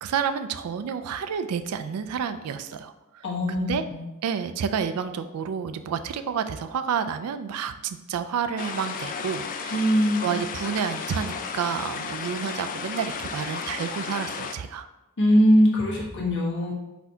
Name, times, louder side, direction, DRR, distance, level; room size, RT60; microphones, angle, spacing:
voice 1, 0.0-3.8 4.2-9.8 10.2-14.9, right 7 dB, 85° right, 10 dB, 0.4 m, -30 dB
voice 2, 3.2-4.0 9.7-10.3 15.2-16.7, equal, 55° left, -3 dB, 1.2 m, -21 dB
sound 1, 8.6-14.5, left 5 dB, 40° left, 0.3 m, -34 dB
4.2 x 2.7 x 4.3 m, 0.97 s
head